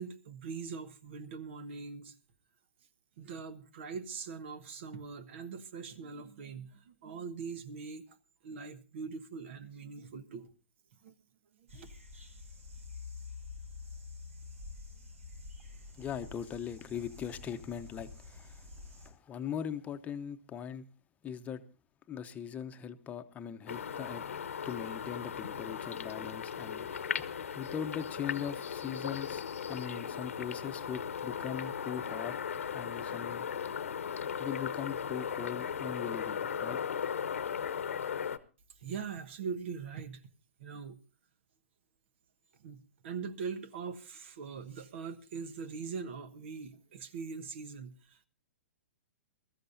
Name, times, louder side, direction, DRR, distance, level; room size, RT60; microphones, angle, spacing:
voice 1, 0.0-2.1 3.2-8.2 8.4-10.5 11.0-11.1 11.6-11.9 38.8-40.2 40.6-41.0 42.6-48.3, right 5 dB, 55° right, 1.2 m, -42 dB
sound 1, 11.7-19.1, left 4 dB, 70° right, 5.9 m, -48 dB
voice 2, 15.9-20.8 21.2-21.6 22.1-24.2 24.6-27.3 27.6-32.4 32.7-33.5 34.4-37.1, left 8 dB, 20° left, 0.9 m, -40 dB
sound 2, 23.7-38.4, left 7 dB, 75° left, 1.0 m, -37 dB
22.0 x 14.0 x 2.6 m
hypercardioid pair, 120°, 7 cm